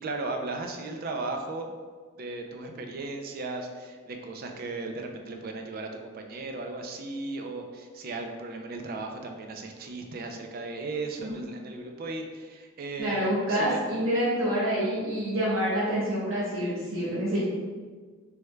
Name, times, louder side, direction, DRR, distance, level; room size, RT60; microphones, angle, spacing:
voice 1, 0.0-1.7 2.2-13.8, right 3 dB, 45° right, 4 dB, 0.3 m, -36 dB
voice 2, 13.0-17.4, equal, 70° right, -9 dB, 1.0 m, -27 dB
3.4 x 2.2 x 3.1 m, 1.5 s
head